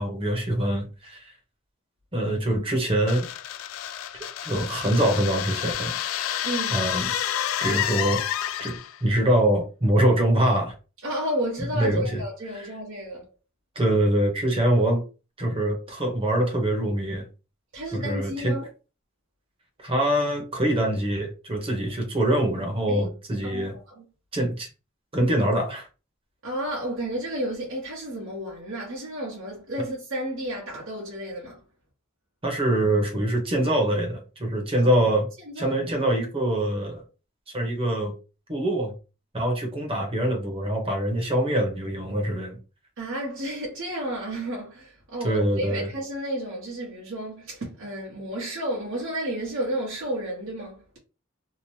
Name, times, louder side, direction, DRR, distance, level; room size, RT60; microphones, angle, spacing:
voice 1, 0.0-1.3 2.1-3.2 4.4-6.0 6.7-7.0 7.6-8.2 8.6-10.7 11.7-12.2 12.5-12.7 13.7-15.0 15.4-17.3 17.9-18.6 19.8-23.8 24.3-24.7 25.1-25.9 32.4-35.3 35.6-37.0 37.5-38.1 38.5-38.9 39.3-42.6 45.2-45.9, right 1 dB, 30° right, 0.9 m, -24 dB
sound 1, 3.1-9.0, left 11 dB, 80° left, 0.3 m, -29 dB
voice 2, 6.4-6.9 11.0-13.3 17.7-18.7 22.9-23.0 23.4-24.0 26.4-31.6 34.8-34.9 35.5-35.8 43.0-51.0, right 1 dB, 70° right, 1.0 m, -32 dB
2.8 x 2.1 x 3.1 m
head